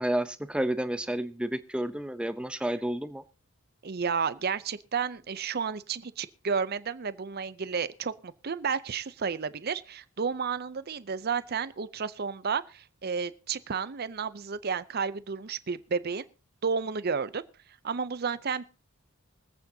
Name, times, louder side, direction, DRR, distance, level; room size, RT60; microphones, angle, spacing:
voice 1, 0.0-3.2, right 1 dB, 5° right, 0.6 m, -30 dB
voice 2, 3.8-16.2 16.6-17.4 17.8-18.6, right 5 dB, 45° right, 0.6 m, -32 dB
24.5 x 8.4 x 2.8 m
head